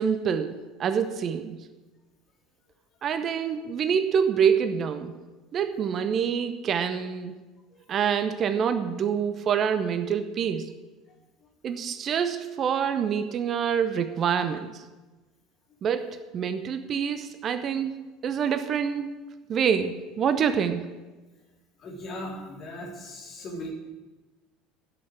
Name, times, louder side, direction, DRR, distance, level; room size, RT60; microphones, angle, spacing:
voice 1, 0.0-1.6 3.0-5.1 5.5-7.3 7.9-10.7 11.6-14.8 15.8-18.0 18.2-19.1 19.5-20.9, right 7 dB, 40° right, 10 dB, 0.8 m, -26 dB
voice 2, 21.8-23.7, left 1 dB, 40° left, -1 dB, 3.5 m, -38 dB
8.5 x 8.2 x 8.9 m, 1.2 s
figure-of-eight pair, 65°, 0 cm